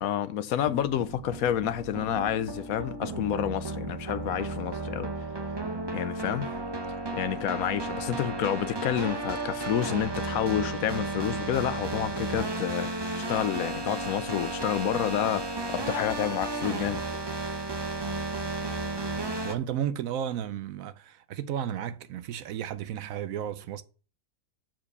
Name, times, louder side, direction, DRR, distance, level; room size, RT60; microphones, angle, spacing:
voice 1, 0.0-5.1 5.9-6.5 7.1-12.9 13.3-15.4 15.7-17.0, left 10 dB, 75° left, 1.1 m, -29 dB
sound 1, 0.6-19.6, right 2 dB, 25° right, 0.6 m, -33 dB
voice 2, 19.4-23.8, right 9 dB, 70° right, 0.9 m, -33 dB
7.3 x 4.9 x 6.6 m
omnidirectional pair, 1.6 m